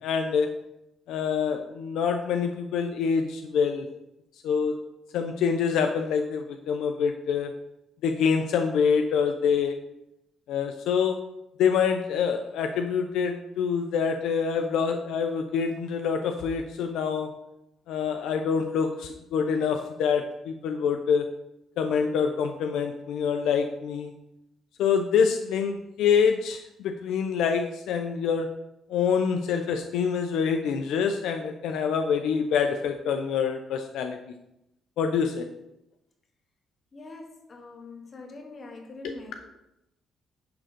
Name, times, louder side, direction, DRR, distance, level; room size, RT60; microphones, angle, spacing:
voice 1, 0.0-0.5 1.1-3.9 4.4-4.7 5.1-7.5 8.0-9.8 10.5-11.2 11.6-17.3 17.9-21.3 21.8-24.1 24.8-28.5 28.9-34.2 35.0-35.5 39.0-39.1, left 6 dB, 85° left, 5 dB, 0.7 m, -26 dB
voice 2, 36.9-39.5, left 2 dB, 40° left, 3 dB, 2.0 m, -43 dB
10.5 x 3.8 x 6.8 m, 0.86 s
cardioid pair, 90°, 0 cm